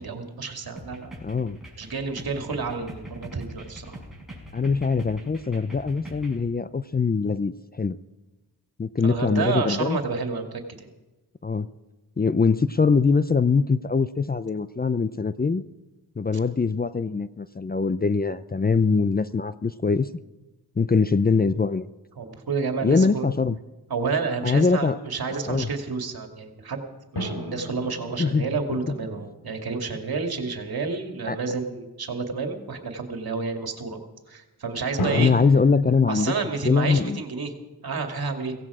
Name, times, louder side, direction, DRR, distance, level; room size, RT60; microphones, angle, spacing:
voice 1, 0.0-1.1 1.8-4.0 9.0-10.9 22.2-23.3 23.9-26.8 27.1-34.0 34.3-35.3 36.1-37.5 37.8-38.6, right 4 dB, 65° right, 4 dB, 2.3 m, -30 dB
sound 1, 0.8-6.4, equal, ahead, 6.0 m, -43 dB
voice 2, 1.2-1.6 4.5-8.0 8.8-10.0 11.4-11.7 12.2-15.6 16.2-20.1 20.8-21.9 22.8-23.6 24.4-25.0 25.3-25.7 28.2-28.5 31.3-31.4 35.1-36.4 36.6-37.2, left 4 dB, 25° left, 14 dB, 0.6 m, -22 dB
sound 2, 27.2-30.1 35.0-35.3, left 1 dB, 70° left, 2.4 m, -33 dB
17.0 x 16.5 x 4.9 m, 1.1 s
cardioid pair, 55°, 39 cm